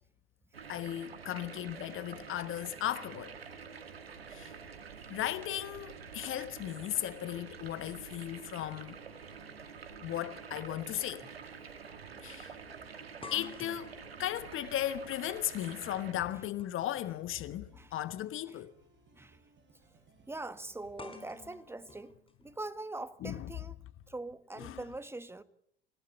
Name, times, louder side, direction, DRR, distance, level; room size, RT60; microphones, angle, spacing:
sound 1, 0.5-16.1, right 6 dB, 85° right, 1.8 m, -48 dB
voice 1, 0.7-3.4 4.3-4.5 5.1-9.0 10.0-11.3 12.2-12.5 13.3-13.9 14.2-18.7 23.2-23.5 24.6-24.8, left 12 dB, 45° left, 1.2 m, -36 dB
sound 2, 2.1-21.5, right 5 dB, 40° right, 7.4 m, -65 dB
sound 3, 11.2-11.4 11.8-11.9 13.2-17.2 18.4-18.6 21.0-23.0, left 4 dB, 20° left, 4.6 m, -52 dB
voice 2, 20.3-22.1 22.4-23.7 24.1-25.4, right 2 dB, 10° right, 1.5 m, -43 dB
27.5 x 17.0 x 8.5 m
figure-of-eight pair, 70°, 29 cm